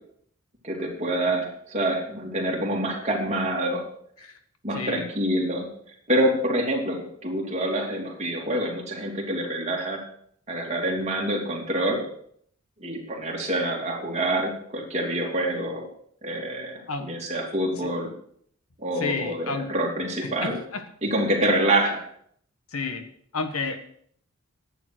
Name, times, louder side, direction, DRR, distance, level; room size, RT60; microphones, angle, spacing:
voice 1, 0.6-3.8 4.6-10.0 10.5-12.0 12.8-15.9 16.2-18.1 18.8-20.6 21.0-22.0, right 1 dB, 30° right, -1 dB, 2.9 m, -26 dB
voice 2, 4.7-5.0 16.9-17.1 17.8-17.9 19.0-19.7 20.2-20.8 22.7-23.1 23.3-23.8, left 4 dB, 80° left, 8 dB, 1.5 m, -31 dB
11.0 x 8.9 x 6.1 m, 0.64 s
head